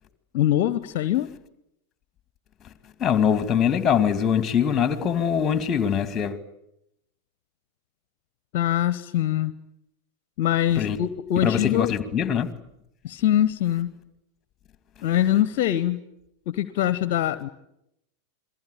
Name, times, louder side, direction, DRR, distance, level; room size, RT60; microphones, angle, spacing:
voice 1, 0.3-1.3 8.5-9.5 10.4-11.9 13.0-13.9 15.0-16.0 16.5-17.5, left 12 dB, 50° left, 1.0 m, -23 dB
voice 2, 3.0-6.4 10.8-11.0 11.4-12.5, left 8 dB, 25° left, 2.3 m, -23 dB
27.5 x 22.0 x 8.6 m
figure-of-eight pair, 90°, 0 cm